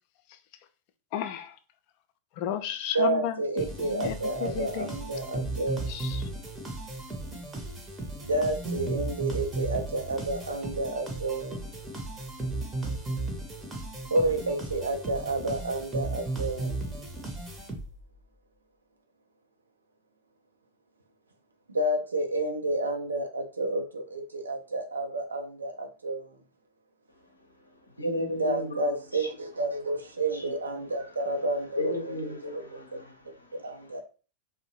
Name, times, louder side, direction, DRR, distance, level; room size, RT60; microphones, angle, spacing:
voice 1, 1.1-1.5 2.4-4.9 5.9-6.2, left 10 dB, 45° left, 0.3 m, -33 dB
voice 2, 2.9-6.0 8.2-11.6 14.1-16.8 21.7-26.4 28.4-32.1 32.5-33.0 33.5-34.0, right 2 dB, 75° right, 0.5 m, -30 dB
sound 1, 3.6-18.1, right 2 dB, 15° right, 0.7 m, -35 dB
voice 3, 28.0-29.3 29.6-29.9 30.3-30.4 30.9-31.1 31.8-33.9, left 1 dB, 85° left, 0.6 m, -35 dB
2.6 x 2.0 x 2.8 m
figure-of-eight pair, 90°, 0 cm